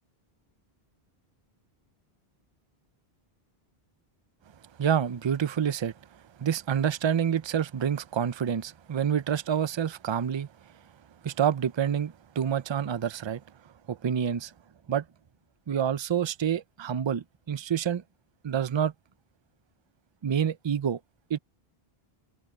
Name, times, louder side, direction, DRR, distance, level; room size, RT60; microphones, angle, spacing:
voice 1, 4.8-10.5 11.2-13.4 13.9-14.5 14.9-15.0 15.7-18.0 18.4-18.9 20.2-21.0 21.3-21.4, right 8 dB, 40° right, 0.4 m, -28 dB
omnidirectional pair, 1.0 m